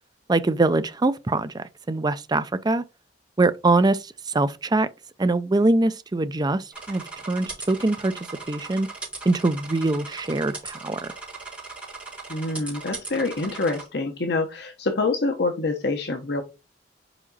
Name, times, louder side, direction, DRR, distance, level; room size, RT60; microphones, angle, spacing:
voice 1, 0.3-2.8 3.4-4.9 5.2-8.1 8.5-8.9 9.3-11.1, right 2 dB, 25° right, 0.5 m, -23 dB
sound 1, 6.7-13.9, right 3 dB, 5° right, 3.8 m, -38 dB
voice 2, 12.3-16.4, left 3 dB, 70° left, 1.0 m, -26 dB
5.0 x 5.0 x 4.0 m
head